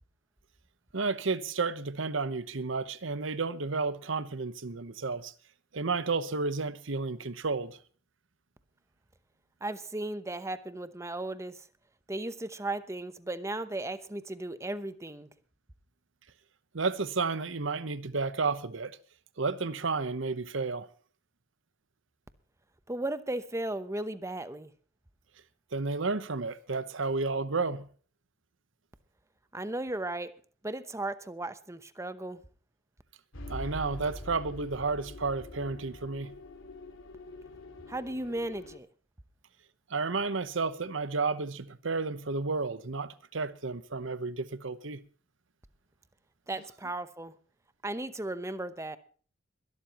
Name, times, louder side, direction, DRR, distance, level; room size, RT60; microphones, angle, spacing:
voice 1, 0.9-5.3 5.7-7.8 16.7-18.9 19.4-20.9 25.7-27.9 33.5-36.3 39.9-45.0, right 4 dB, 65° right, 1.0 m, -32 dB
voice 2, 9.6-11.6 12.1-15.3 22.9-24.7 29.5-30.3 30.6-32.4 37.9-38.9 46.5-47.3 47.8-49.0, right 2 dB, 15° right, 0.9 m, -36 dB
sound 1, 33.3-38.8, left 1 dB, 75° left, 2.7 m, -44 dB
22.0 x 12.5 x 3.0 m
head